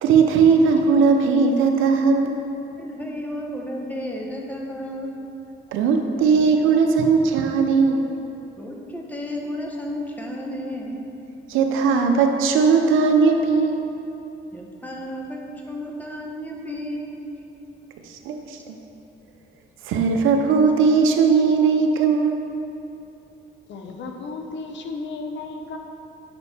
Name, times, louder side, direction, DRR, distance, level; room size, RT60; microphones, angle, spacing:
voice 1, 0.0-2.5 5.7-8.1 11.5-13.9 18.2-18.8 19.9-22.5, right 5 dB, 90° right, 4 dB, 0.7 m, -18 dB
voice 2, 2.8-5.2 8.6-11.0 14.5-17.3, left 1 dB, 10° left, -1 dB, 1.0 m, -32 dB
voice 3, 23.7-25.8, left 3 dB, 65° left, 3 dB, 0.8 m, -34 dB
6.9 x 5.3 x 4.2 m, 2.9 s
cardioid pair, 90°, 20 cm